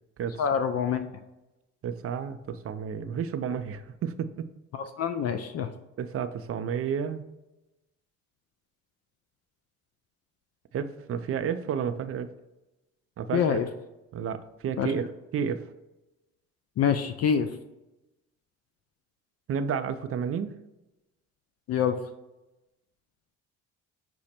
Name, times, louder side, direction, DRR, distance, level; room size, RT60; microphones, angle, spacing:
voice 1, 0.4-1.1 4.7-5.7 13.3-13.7 14.8-14.9 16.8-17.5 21.7-22.0, left 7 dB, 50° left, 8 dB, 0.4 m, -26 dB
voice 2, 1.8-4.5 6.0-7.2 10.7-12.3 13.2-13.6 14.1-15.7 19.5-20.5, right 7 dB, 45° right, 11 dB, 0.4 m, -31 dB
5.9 x 2.1 x 4.2 m, 0.97 s
supercardioid pair, 70°, 33 cm